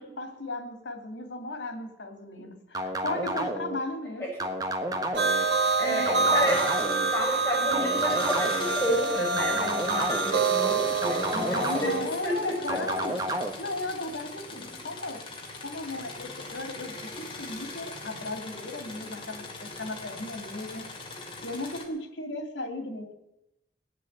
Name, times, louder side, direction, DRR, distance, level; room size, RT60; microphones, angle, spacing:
voice 1, 0.0-4.3 5.8-6.3 11.3-13.1 13.6-15.2 15.6-20.8 21.4-23.1, left 2 dB, 85° left, 6 dB, 2.4 m, -36 dB
sound 1, 2.7-3.8 4.4-5.4 6.1-7.1 7.7-8.8 9.4-10.4 11.0-12.1 12.7-13.5, right 1 dB, 20° right, 1.2 m, -31 dB
sound 2, 5.1-12.0, right 4 dB, 70° right, 1.6 m, -27 dB
voice 2, 5.8-12.8 14.5-14.6, equal, 10° left, -4 dB, 6.4 m, -31 dB
Engine / Mechanisms, 6.1-7.4 7.7-21.9, left 3 dB, 30° left, 2.6 m, -41 dB
18.5 x 7.6 x 8.7 m, 0.91 s
head